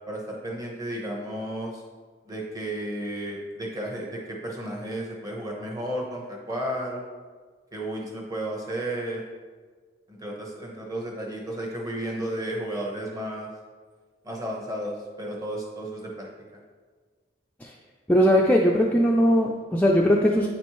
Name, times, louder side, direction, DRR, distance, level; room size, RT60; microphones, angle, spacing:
voice 1, 0.1-1.8 2.3-7.0 7.7-9.2 10.1-13.5 14.2-16.3, right 1 dB, 20° right, -1 dB, 1.0 m, -33 dB
voice 2, 18.1-20.5, equal, 10° left, -2 dB, 0.3 m, -20 dB
9.1 x 4.3 x 3.0 m, 1.5 s
head